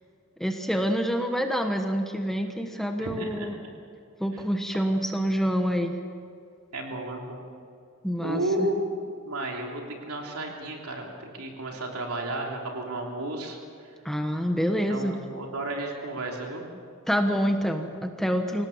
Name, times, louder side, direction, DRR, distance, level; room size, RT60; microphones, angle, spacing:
voice 1, 0.4-3.5 4.2-6.0 8.0-8.7 14.0-15.2 17.1-18.7, equal, ahead, 4 dB, 1.2 m, -27 dB
voice 2, 3.0-3.5 6.7-7.5 8.2-9.0 9.2-13.6 13.8-13.9 14.9-16.6, right 1 dB, 80° right, 0 dB, 3.3 m, -32 dB
26.0 x 17.5 x 7.3 m, 2.3 s
head